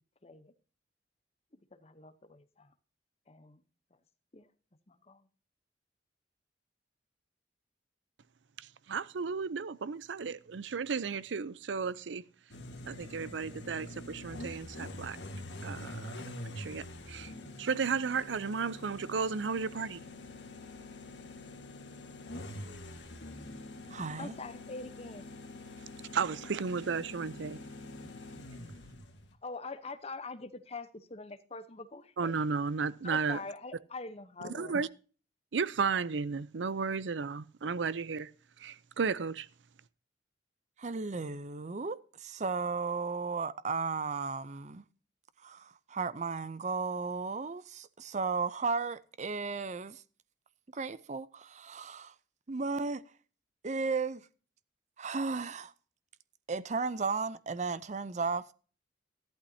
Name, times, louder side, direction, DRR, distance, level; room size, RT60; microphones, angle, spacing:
voice 1, 0.2-0.5 1.7-2.7 3.3-3.6 4.3-4.5 4.9-5.3 24.2-25.3 29.4-32.4 33.0-34.8, left 3 dB, 35° left, 0.9 m, -44 dB
voice 2, 8.6-12.2 12.9-15.2 15.6-16.1 16.4-17.3 17.6-20.0 26.1-27.6 32.2-33.4 34.5-34.9 35.5-38.3 38.6-39.5, right 5 dB, 90° right, 0.5 m, -34 dB
sound 1, 12.5-29.3, left 1 dB, 75° left, 1.7 m, -45 dB
voice 3, 23.9-24.3 40.8-44.8 45.4-50.0 50.7-52.1 52.5-53.0 53.6-54.3 55.0-55.7 56.5-58.5, right 4 dB, 40° right, 0.6 m, -35 dB
14.0 x 11.5 x 2.7 m
head